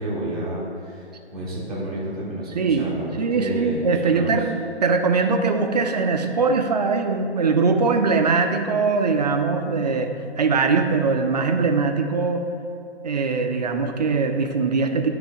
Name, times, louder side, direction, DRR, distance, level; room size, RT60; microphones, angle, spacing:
voice 1, 0.0-3.0 3.3-4.3, right 1 dB, ahead, -12 dB, 0.9 m, -30 dB
voice 2, 2.5-2.9 3.2-4.5 4.8-12.5 13.0-15.1, right 4 dB, 40° right, 5 dB, 0.5 m, -21 dB
8.8 x 3.3 x 4.7 m, 2.6 s
figure-of-eight pair, 150°, 33 cm